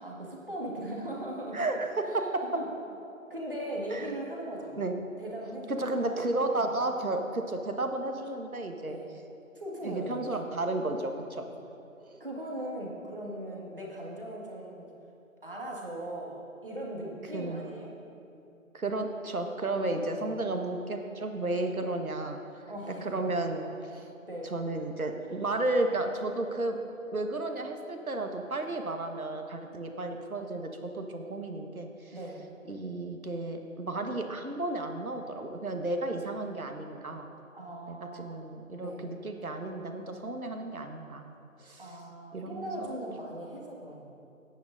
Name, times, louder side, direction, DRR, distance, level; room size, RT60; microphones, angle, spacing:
voice 1, 0.0-1.7 2.0-2.2 2.5-2.7 3.3-4.8 5.2-5.9 6.6-6.7 8.9-9.1 9.5-10.4 12.2-14.9 15.4-17.9 20.1-20.3 22.7-23.2 24.2-24.5 32.1-32.4 37.5-38.4 38.8-39.0 41.8-44.1, right 1 dB, 40° right, -3 dB, 1.8 m, -39 dB
voice 2, 1.5-2.2 3.9-4.1 4.6-4.9 5.7-9.0 9.8-11.4 12.1-12.2 17.3-17.7 18.7-22.6 23.0-24.1 24.4-26.8 27.1-32.1 32.7-37.3 37.9-41.3 41.6-42.0 42.3-42.9, right 2 dB, 80° right, 4 dB, 1.4 m, -33 dB
19.0 x 9.3 x 2.6 m, 2.7 s
figure-of-eight pair, 180°, 42 cm